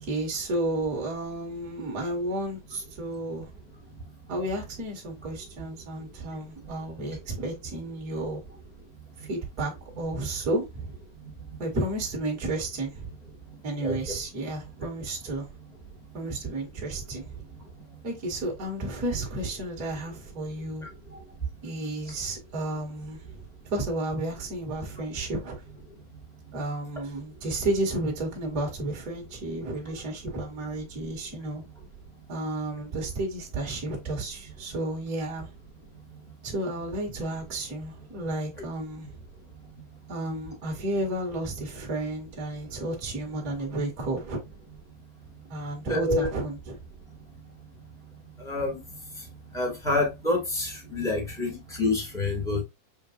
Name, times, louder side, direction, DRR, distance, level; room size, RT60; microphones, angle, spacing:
voice 1, 0.0-3.5 4.3-8.4 9.2-10.9 11.6-13.1 13.6-15.4 16.1-17.2 18.0-20.9 21.6-23.4 23.7-25.5 26.5-31.6 32.3-35.5 36.4-39.1 40.1-44.4 45.5-46.8, right 2 dB, 40° right, 1.3 m, -32 dB
voice 2, 45.9-46.3 48.4-48.8 49.5-52.6, left 2 dB, ahead, 0.8 m, -27 dB
7.4 x 2.6 x 2.5 m
omnidirectional pair, 4.4 m